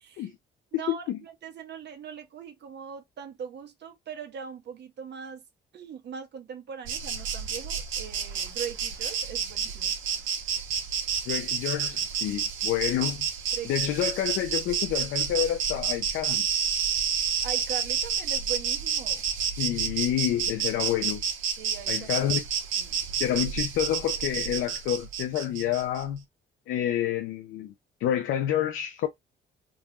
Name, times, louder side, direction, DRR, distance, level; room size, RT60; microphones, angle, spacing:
voice 1, 0.0-0.3 0.7-5.4 5.7-9.9 13.5-13.7 17.4-19.2 21.6-22.1 22.8-23.0, right 7 dB, 60° right, 1.2 m, -40 dB
Insect, 6.9-26.0, right 7 dB, 80° right, 1.0 m, -30 dB
voice 2, 11.3-13.3 13.6-16.5 19.4-21.2 21.9-22.4 23.2-26.2 26.7-27.7 28.0-29.1, left 11 dB, 85° left, 0.6 m, -28 dB
3.8 x 2.6 x 3.0 m
cardioid pair, 90°, 20 cm